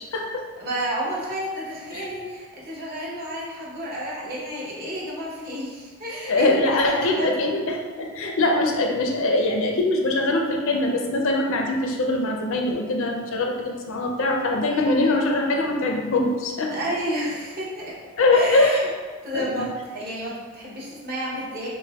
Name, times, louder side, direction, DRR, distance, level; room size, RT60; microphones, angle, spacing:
voice 1, 0.0-0.4 1.9-2.1 6.3-16.7 18.2-18.8 19.3-19.7, left 2 dB, 65° left, 2 dB, 0.5 m, -22 dB
voice 2, 0.6-7.3 16.7-18.0 18.3-18.9 19.2-21.7, equal, 45° right, -6 dB, 0.9 m, -31 dB
5.7 x 2.1 x 2.3 m, 1.4 s
head